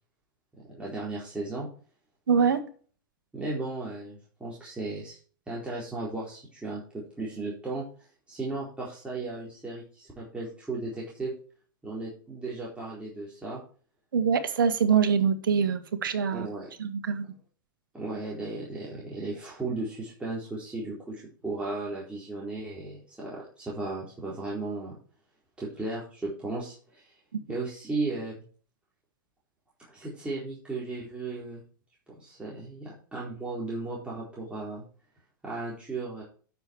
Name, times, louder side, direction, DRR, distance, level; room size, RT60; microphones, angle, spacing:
voice 1, 0.7-1.7 3.3-5.2 5.5-7.8 8.3-11.3 11.8-13.6 16.3-16.7 17.9-24.9 25.6-27.1 27.5-28.4 29.9-31.6 32.1-34.8 35.4-36.2, right 3 dB, 10° right, -7 dB, 4.2 m, -35 dB
voice 2, 2.3-2.6 14.1-16.5 16.8-17.2 27.3-27.4, right 6 dB, 80° right, 10 dB, 1.5 m, -24 dB
9.6 x 7.0 x 4.6 m, 0.41 s
hypercardioid pair, 105°, 11 cm